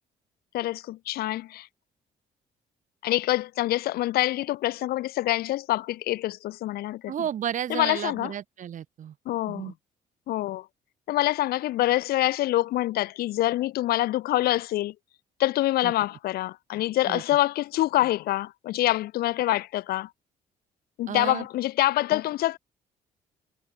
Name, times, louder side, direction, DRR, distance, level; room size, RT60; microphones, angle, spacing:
voice 1, 0.5-1.7 3.0-7.1 7.7-8.3 9.3-9.7 10.3-10.7 11.1-14.9 15.4-20.1 21.0-22.6, left 15 dB, 85° left, 3.4 m, -26 dB
voice 2, 7.1-9.1 9.5-9.7 15.8-15.9 17.1-17.2 21.1-21.5, right 10 dB, 55° right, 3.9 m, -32 dB
cardioid pair, 125°, 16 cm